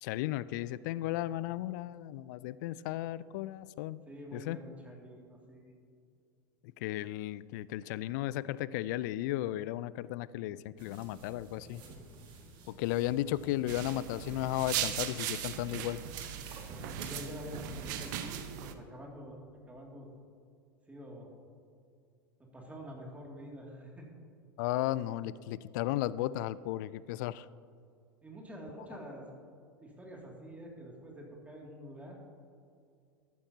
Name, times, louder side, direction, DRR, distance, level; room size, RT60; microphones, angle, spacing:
voice 1, 0.0-4.0 4.3-4.6 6.8-11.8 12.7-16.0 24.6-27.5, left 14 dB, 60° left, 18 dB, 0.4 m, -35 dB
voice 2, 4.1-5.7 16.7-19.4 19.7-20.1 20.9-21.3 22.4-24.1 28.2-29.2 29.8-32.2, equal, 15° right, -1 dB, 2.4 m, -47 dB
sound 1, 10.8-18.4, right 3 dB, 45° right, 1.9 m, -49 dB
sound 2, 13.7-18.7, right 11 dB, 60° right, 0.8 m, -38 dB
14.0 x 11.5 x 2.8 m, 2.4 s
hypercardioid pair, 85°, 11 cm